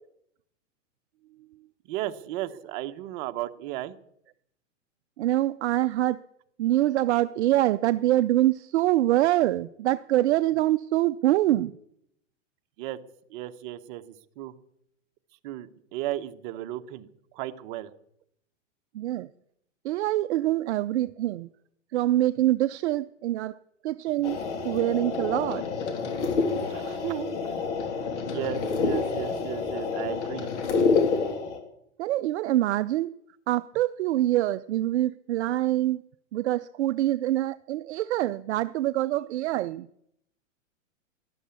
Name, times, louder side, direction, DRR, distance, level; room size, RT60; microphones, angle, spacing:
voice 1, 1.8-4.0 12.8-13.0 13.3-14.5 15.4-17.1 17.3-17.9 26.7-27.6 28.3-30.5, right 14 dB, 40° right, 8 dB, 1.1 m, -35 dB
voice 2, 5.2-6.2 6.6-11.7 18.9-19.3 19.8-21.5 21.9-23.6 23.8-24.4 24.6-25.8 32.0-33.1 33.5-36.0 36.3-39.9, right 14 dB, 60° right, 13 dB, 0.6 m, -25 dB
sound 1, 24.2-31.6, left 4 dB, 65° left, 3.4 m, -28 dB
13.5 x 12.0 x 8.3 m, 0.75 s
hypercardioid pair, 140°, 38 cm